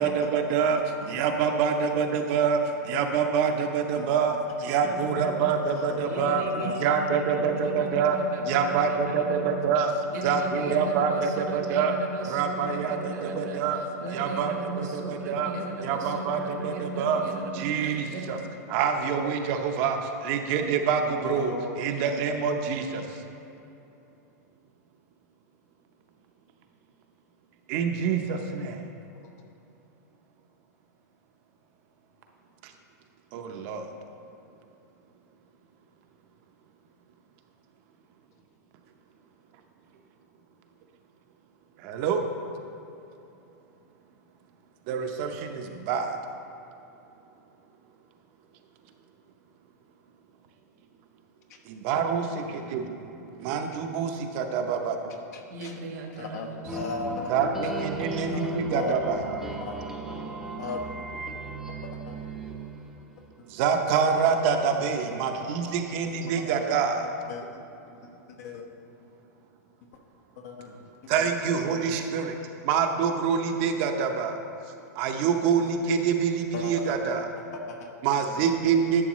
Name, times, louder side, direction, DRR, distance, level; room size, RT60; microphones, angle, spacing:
voice 1, 0.0-8.2 8.5-9.9 10.2-11.9 12.2-13.8 14.1-15.5 15.8-17.2 17.5-18.4 18.7-23.1 27.7-28.8 32.6-32.7 33.3-33.9 41.8-42.2 44.9-46.2 51.7-55.1 57.3-59.4 63.5-67.1 71.1-72.4 72.6-74.3 75.0-77.3 78.0-79.1, right 6 dB, 45° right, 5 dB, 0.7 m, -26 dB
voice 2, 4.8-5.5 6.0-9.6 10.1-18.3 55.5-58.7 60.0-60.5, right 3 dB, 70° right, 2 dB, 1.2 m, -37 dB
voice 3, 5.8-6.7 8.4-8.5 20.9-21.0 21.3-21.8 55.3-55.7 56.2-57.3 57.6-57.9 58.3-59.0 59.6-59.8 60.6-61.1 61.8-62.2 65.3-65.4 66.3-66.4 67.3-67.4 68.4-68.6 70.4-70.8 71.2-71.7 76.5-76.7 77.5-77.9, left 4 dB, 65° left, 2 dB, 1.1 m, -37 dB
sound 1, 56.7-63.2, right 2 dB, 5° right, 0.7 m, -36 dB
11.0 x 7.2 x 3.1 m, 2.8 s
supercardioid pair, 145°, 9 cm